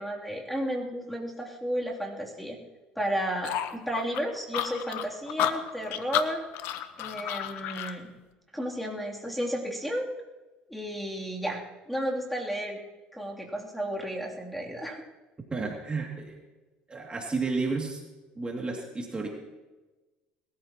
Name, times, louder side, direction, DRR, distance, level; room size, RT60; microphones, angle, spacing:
voice 1, 0.0-2.6 2.9-6.4 7.0-8.1 8.5-10.1 10.7-11.6 11.9-12.8 13.1-15.0, equal, ahead, -2 dB, 3.2 m, -32 dB
sound 1, 3.4-8.0, left 12 dB, 70° left, 1.0 m, -31 dB
voice 2, 15.5-16.4 16.9-18.0 18.4-19.3, right 4 dB, 25° right, 0 dB, 2.7 m, -31 dB
21.5 x 14.0 x 3.1 m, 1.1 s
supercardioid pair, 75°, 4 cm